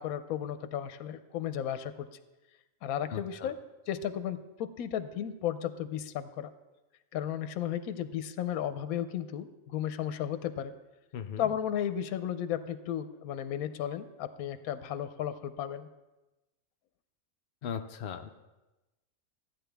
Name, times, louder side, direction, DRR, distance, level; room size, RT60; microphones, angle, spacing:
voice 1, 0.0-2.1 2.8-3.5 3.9-6.5 7.1-10.7 11.4-15.9, left 10 dB, 85° left, 11 dB, 1.0 m, -34 dB
voice 2, 3.1-3.5 11.1-11.5 17.6-18.3, left 7 dB, 60° left, 6 dB, 0.6 m, -38 dB
14.0 x 9.2 x 3.4 m, 1.0 s
omnidirectional pair, 1.5 m